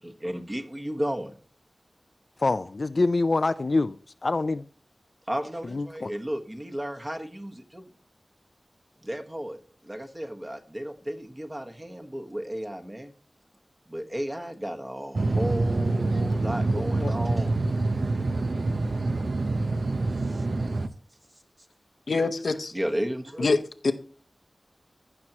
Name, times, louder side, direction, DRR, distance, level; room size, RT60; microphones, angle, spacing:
voice 1, 0.0-1.3 5.3-7.8 9.0-13.1 13.9-17.6 20.3-20.4 22.7-23.5, equal, 20° right, 1.3 m, -34 dB
voice 2, 2.4-4.7 5.7-6.1 16.8-17.1, left 3 dB, 60° left, 0.4 m, -26 dB
sound 1, 15.1-20.9, right 2 dB, 70° right, 0.7 m, -26 dB
voice 3, 22.1-22.7 23.4-23.9, left 3 dB, 85° left, 0.8 m, -25 dB
15.5 x 6.0 x 2.9 m
wide cardioid pair, 80°, 0 cm